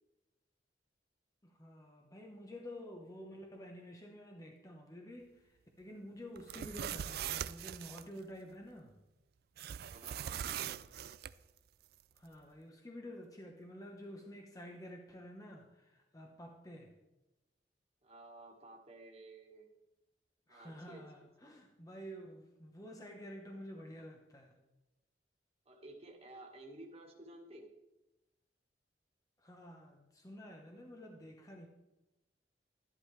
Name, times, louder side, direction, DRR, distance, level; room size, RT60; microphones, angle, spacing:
voice 1, 1.4-9.0 12.1-16.9 20.5-24.5 29.4-31.7, equal, 20° left, 2 dB, 1.0 m, -50 dB
sound 1, 6.4-8.0 9.6-11.3, right 9 dB, 60° right, 0.4 m, -41 dB
voice 2, 9.8-10.7 18.0-19.7 20.5-21.5 25.7-27.7, right 2 dB, 35° right, 0 dB, 1.7 m, -54 dB
13.0 x 11.0 x 3.3 m, 1.0 s
head